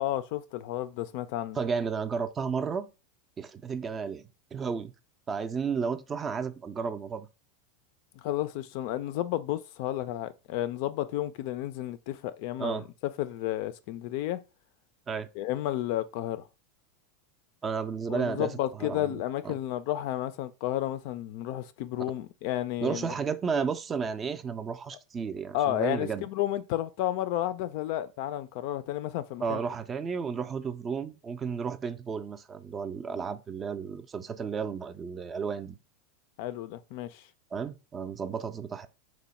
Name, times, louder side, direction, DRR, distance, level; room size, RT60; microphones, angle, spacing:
voice 1, 0.0-1.6 8.2-12.8 13.2-14.4 15.4-16.4 18.1-23.2 25.5-29.6 36.4-37.2, left 13 dB, 60° left, 0.3 m, -32 dB
voice 2, 1.5-2.9 3.4-4.2 4.5-4.9 5.3-7.3 12.6-12.9 15.1-15.3 17.6-18.5 18.8-19.2 19.4-19.5 22.8-26.3 29.4-35.8 37.5-38.9, right 6 dB, 25° right, 0.4 m, -32 dB
3.0 x 2.1 x 4.1 m
hypercardioid pair, 115°, 0 cm